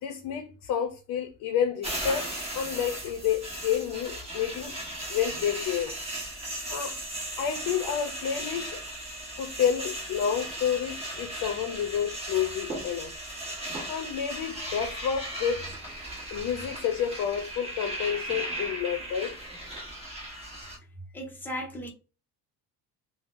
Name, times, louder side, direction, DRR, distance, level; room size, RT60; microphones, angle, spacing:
voice 1, 0.0-2.3 2.5-4.7 5.1-6.0 6.7-7.0 7.4-8.8 9.4-13.1 13.9-15.7 16.3-19.4, left 8 dB, 60° left, 0.6 m, -29 dB
sound 1, 1.8-20.8, right 1 dB, 15° right, 1.0 m, -37 dB
voice 2, 21.1-21.9, equal, 5° left, 0.5 m, -36 dB
3.5 x 2.0 x 2.4 m
cardioid pair, 165°, 40 cm